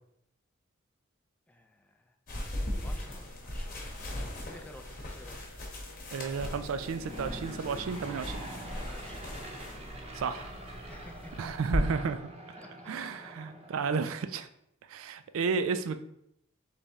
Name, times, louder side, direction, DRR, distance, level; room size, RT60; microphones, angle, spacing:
voice 1, 1.5-2.2 2.8-3.8 4.4-5.4 8.8-9.3 10.9-11.7 12.6-12.7 13.0-13.1, left 1 dB, 5° left, 4 dB, 0.3 m, -52 dB
sound 1, 2.3-11.8, left 1 dB, 45° left, 1.0 m, -39 dB
voice 2, 6.1-8.5 10.1-10.5 11.4-12.3 12.9-14.5 14.9-16.0, right 5 dB, 75° right, 10 dB, 0.3 m, -32 dB
Aircraft / Engine, 6.3-14.3, right 1 dB, 30° right, 0.7 m, -45 dB
3.5 x 3.3 x 4.0 m, 0.76 s
head